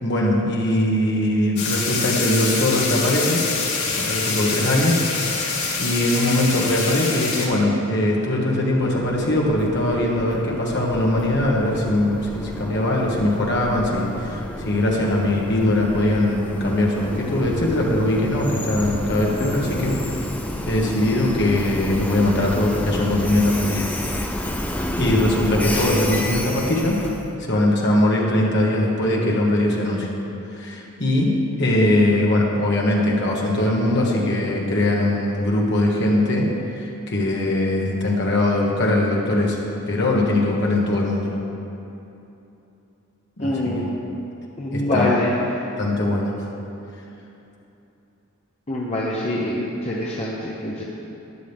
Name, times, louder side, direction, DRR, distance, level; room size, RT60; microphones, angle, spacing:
voice 1, 0.0-3.4 3.8-5.1 5.3-20.2 20.7-23.8 25.0-27.1 27.4-30.1 30.6-41.3 43.4-43.9 44.7-45.1 45.8-46.3, left 1 dB, 50° left, -2 dB, 1.6 m, -21 dB
sound 1, 1.6-7.5, left 4 dB, 80° left, 1.9 m, -25 dB
Train, 8.6-27.3, left 1 dB, 5° left, 0.5 m, -30 dB
voice 2, 43.4-43.8 44.6-45.4 48.7-50.8, left 1 dB, 30° left, -5 dB, 0.9 m, -24 dB
12.5 x 10.5 x 3.6 m, 2.9 s
head